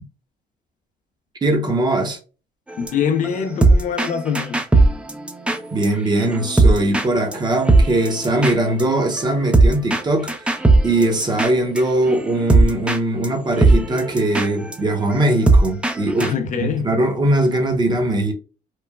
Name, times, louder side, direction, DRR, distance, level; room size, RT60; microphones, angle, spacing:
voice 1, 1.4-2.2 5.7-10.5 10.8-16.3 16.6-18.3, right 1 dB, 25° right, 0.8 m, -20 dB
sound 1, 2.7-5.9 6.2-7.1 7.3-7.4 7.7-13.0 13.2-13.3 13.6-16.3, right 2 dB, 5° right, 0.4 m, -18 dB
voice 2, 2.8-4.6 16.2-17.0, left 7 dB, 50° left, 0.5 m, -24 dB
3.0 x 2.1 x 2.2 m
cardioid pair, 110°, 17 cm